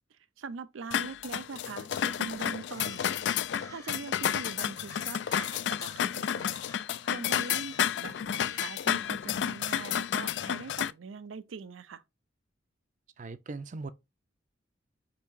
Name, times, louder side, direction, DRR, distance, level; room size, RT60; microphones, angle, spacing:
voice 1, 0.1-3.2 3.7-6.6 7.1-12.0, right 5 dB, 90° right, 0.5 m, -42 dB
sound 1, 0.9-10.9, left 9 dB, 65° left, 0.3 m, -31 dB
sound 2, 1.9-4.1 4.8-8.9, left 2 dB, 15° left, 0.7 m, -52 dB
voice 2, 13.2-13.9, right 3 dB, 40° right, 0.5 m, -39 dB
6.8 x 2.8 x 2.6 m
head